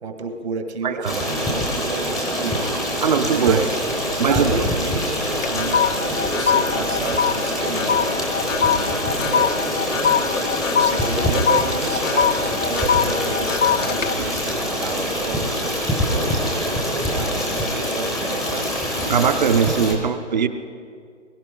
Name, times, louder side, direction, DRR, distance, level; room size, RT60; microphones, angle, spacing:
voice 1, 0.0-3.0 3.3-3.8 4.3-15.7 16.1-18.7, right 4 dB, 60° right, 5 dB, 2.0 m, -31 dB
voice 2, 0.8-1.2 3.0-3.6 4.2-4.7 19.1-20.5, right 6 dB, 35° right, 10 dB, 0.7 m, -20 dB
Stream, 1.0-19.9, equal, ahead, 0.6 m, -25 dB
sound 1, 4.2-4.7 5.0-15.6 16.0-16.3, left 7 dB, 85° left, 0.6 m, -23 dB
22.0 x 11.5 x 3.8 m, 2.2 s
figure-of-eight pair, 145°, 36 cm